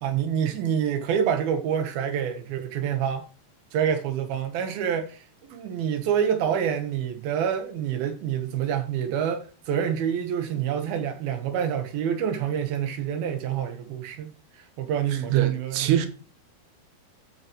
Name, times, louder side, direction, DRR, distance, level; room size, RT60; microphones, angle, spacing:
voice 1, 0.0-3.3 3.7-14.3 14.8-16.1, right 8 dB, 70° right, 3.0 m, -27 dB
voice 2, 15.3-16.1, right 12 dB, 90° right, 3.2 m, -23 dB
13.0 x 6.5 x 3.1 m
omnidirectional pair, 4.7 m